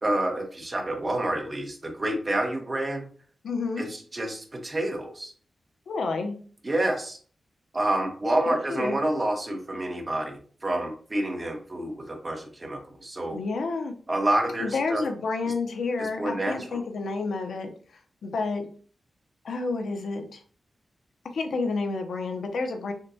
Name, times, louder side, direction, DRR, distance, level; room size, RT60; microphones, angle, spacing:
voice 1, 0.0-3.1 3.8-5.3 6.6-7.2 7.7-13.4 14.1-15.0 16.0-16.8, right 1 dB, 25° right, 2 dB, 1.1 m, -28 dB
voice 2, 3.4-3.8 5.9-6.4 8.5-9.0 13.3-13.9 14.6-17.7 18.2-18.7 19.4-20.4 21.3-22.9, left 3 dB, 85° left, 4 dB, 0.7 m, -29 dB
6.4 x 2.2 x 2.8 m, 0.43 s
wide cardioid pair, 130°, 0 cm